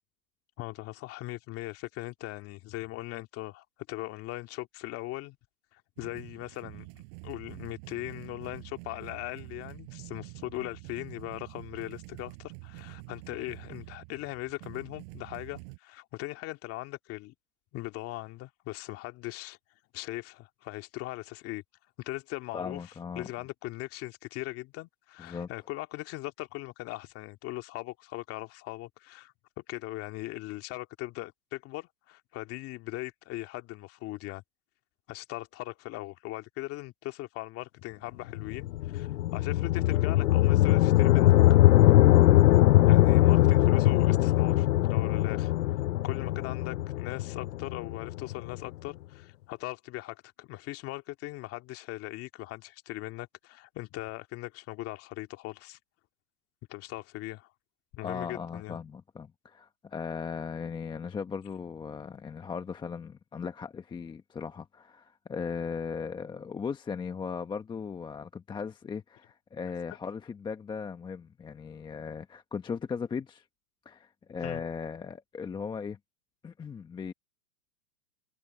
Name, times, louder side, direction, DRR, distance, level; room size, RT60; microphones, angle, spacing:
voice 1, 0.6-5.4 5.7-17.3 17.7-19.6 19.9-21.6 22.0-22.8 23.2-34.4 35.1-41.6 42.9-45.5 46.0-55.8 56.7-57.5 57.9-58.8 74.4-74.6, left 18 dB, 30° left, 2.1 m, -39 dB
sound 1, 6.0-15.8, right 34 dB, 45° right, 6.1 m, -47 dB
voice 2, 22.5-23.3 25.2-25.5 58.0-73.4 73.8-76.0 76.4-77.1, left 6 dB, 10° left, 1.0 m, -37 dB
sound 2, 38.3-48.6, left 15 dB, 75° left, 0.6 m, -21 dB
hypercardioid pair, 140°, 45 cm